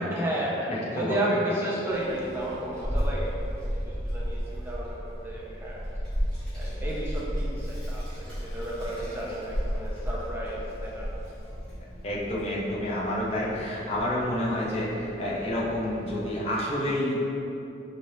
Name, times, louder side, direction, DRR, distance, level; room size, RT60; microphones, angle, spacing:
voice 1, 0.1-5.8 6.5-11.1 14.2-14.5, right 1 dB, 10° right, -5 dB, 0.5 m, -33 dB
voice 2, 0.7-1.6 8.8-8.9 12.0-17.1, left 1 dB, 35° left, -5 dB, 0.7 m, -29 dB
Child speech kid speaking, 1.9-16.3, equal, 5° left, 1.2 m, -34 dB
4.3 x 3.3 x 2.7 m, 2.8 s
head